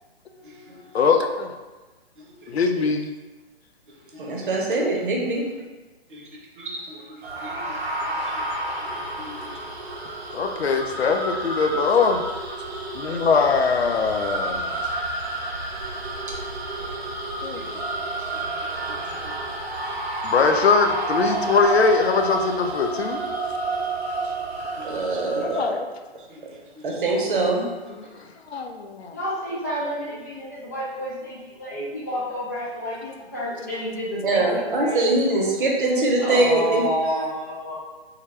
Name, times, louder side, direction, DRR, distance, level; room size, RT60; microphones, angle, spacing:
voice 1, 0.9-1.5 2.5-3.1 10.3-12.2 12.9-14.9 17.4-17.6 20.2-23.2 25.4-25.9 28.0-28.1 28.5-29.1, left 5 dB, 80° left, 5 dB, 0.5 m, -21 dB
voice 2, 4.1-5.5 6.1-6.2 6.6-7.7 8.1-8.2 8.7-8.9 9.2-9.4 17.5-17.8 18.3-18.7 19.1-19.4 24.8-25.6 26.3-26.4 26.8-27.7 34.2-36.8, right 2 dB, 55° right, 0 dB, 0.8 m, -24 dB
sound 1, 7.2-25.7, right 2 dB, 80° right, 0.7 m, -30 dB
voice 3, 29.1-35.0 36.2-37.7, equal, 20° left, -6 dB, 0.4 m, -29 dB
3.3 x 2.2 x 3.3 m, 1.2 s
figure-of-eight pair, 135°, 31 cm